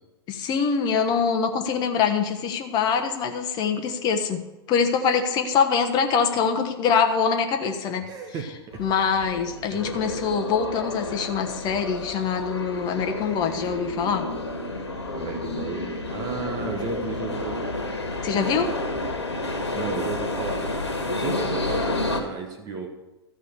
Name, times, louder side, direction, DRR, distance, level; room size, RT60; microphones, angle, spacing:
voice 1, 0.3-8.1 8.8-14.3 18.2-18.7, left 6 dB, 30° left, 5 dB, 1.2 m, -24 dB
voice 2, 8.0-8.8 9.7-9.9 15.1-17.7 18.3-18.6 19.7-20.6 21.0-22.9, right 5 dB, 30° right, 4 dB, 1.3 m, -34 dB
sound 1, 8.7-22.2, left 2 dB, 80° left, 1.8 m, -30 dB
13.0 x 5.1 x 6.8 m, 1.0 s
figure-of-eight pair, 105°, 14 cm